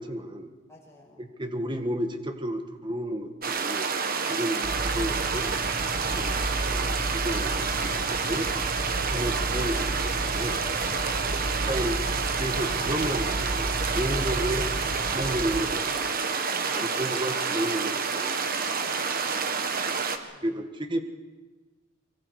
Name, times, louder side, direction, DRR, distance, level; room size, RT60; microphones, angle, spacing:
voice 1, 0.0-0.5 1.2-3.9 4.3-5.5 6.0-8.5 9.1-10.6 11.6-12.0 12.4-14.7 15.0-16.1 16.7-18.7 20.4-21.0, right 1 dB, 25° right, 6 dB, 1.7 m, -32 dB
voice 2, 0.7-1.2 4.2-4.5 16.5-16.8 18.8-20.6, equal, 15° left, -3 dB, 6.8 m, -53 dB
sound 1, 3.4-20.2, right 5 dB, 45° right, 1.4 m, -28 dB
sound 2, 4.6-15.6, right 1 dB, 85° right, 2.4 m, -33 dB
Wind, 10.1-13.6 14.2-15.2 16.0-16.1, left 3 dB, 85° left, 3.6 m, -50 dB
24.5 x 24.0 x 4.9 m, 1.3 s
head